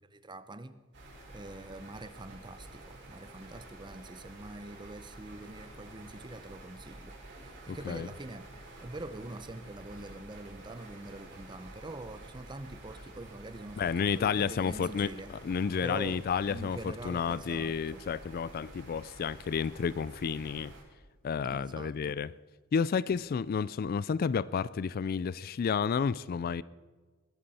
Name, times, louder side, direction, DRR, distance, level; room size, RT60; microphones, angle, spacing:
voice 1, 0.1-0.8 1.3-7.2 7.4-8.5 8.8-15.3 15.8-18.0 21.4-22.2 23.1-23.3, right 2 dB, 20° right, 0.7 m, -44 dB
sound 1, 0.9-20.8, right 2 dB, 55° right, 5.1 m, -50 dB
voice 2, 7.7-8.1 13.8-20.7 21.2-22.3 22.7-26.6, left 6 dB, 45° left, 0.3 m, -31 dB
20.5 x 13.0 x 4.2 m
head